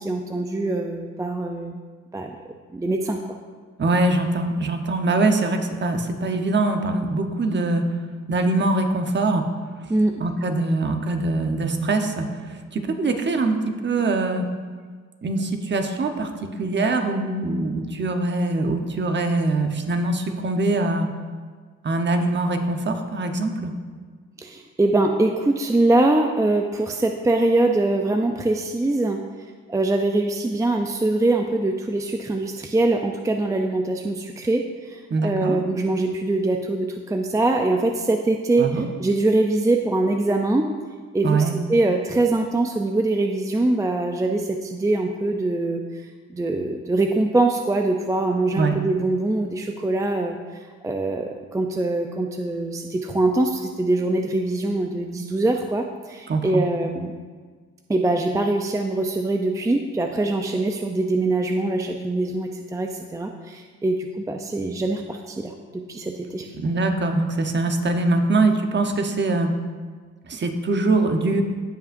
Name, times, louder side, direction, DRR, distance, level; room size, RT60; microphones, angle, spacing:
voice 1, 0.0-1.8 2.1-2.4 2.7-3.2 9.9-10.1 24.4-29.2 29.7-40.7 41.1-46.0 46.3-50.4 50.8-57.1 57.9-66.5, right 2 dB, 10° right, 4 dB, 0.5 m, -23 dB
voice 2, 3.8-7.8 8.3-9.4 10.2-14.4 15.2-21.1 21.8-23.7 35.1-35.6 38.6-38.9 41.2-41.5 48.6-48.8 56.3-56.6 66.6-69.5 70.3-71.4, right 2 dB, 35° right, 5 dB, 1.0 m, -23 dB
16.5 x 5.5 x 2.6 m, 1.5 s
cardioid pair, 90°, 30 cm